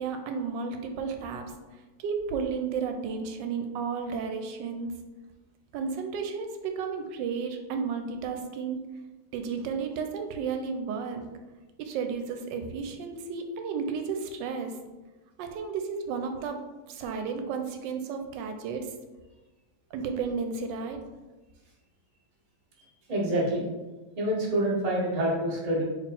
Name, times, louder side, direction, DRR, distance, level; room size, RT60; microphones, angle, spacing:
voice 1, 0.0-1.5 2.0-4.9 5.7-8.8 9.3-11.3 11.8-14.7 15.4-16.6 16.9-18.9 19.9-21.0, right 5 dB, 85° right, 5 dB, 1.2 m, -33 dB
voice 2, 23.1-23.7 24.2-25.8, right 1 dB, 30° right, -4 dB, 0.9 m, -27 dB
4.4 x 3.0 x 4.1 m, 1.2 s
omnidirectional pair, 1.9 m